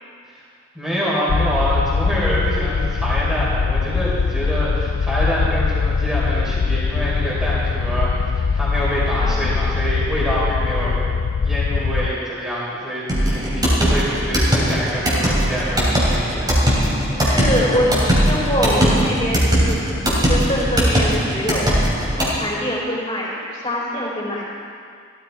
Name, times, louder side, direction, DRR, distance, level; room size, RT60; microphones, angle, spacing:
voice 1, 0.7-11.0 11.4-16.5, equal, ahead, -9 dB, 3.7 m, -25 dB
sound 1, 1.3-12.1, left 5 dB, 80° left, 0.4 m, -21 dB
sound 2, 13.1-22.4, equal, 20° right, 3.2 m, -19 dB
voice 2, 17.2-19.9 20.3-21.7 22.1-24.5, equal, 25° left, -6 dB, 4.4 m, -24 dB
16.0 x 13.5 x 4.5 m, 2.2 s
head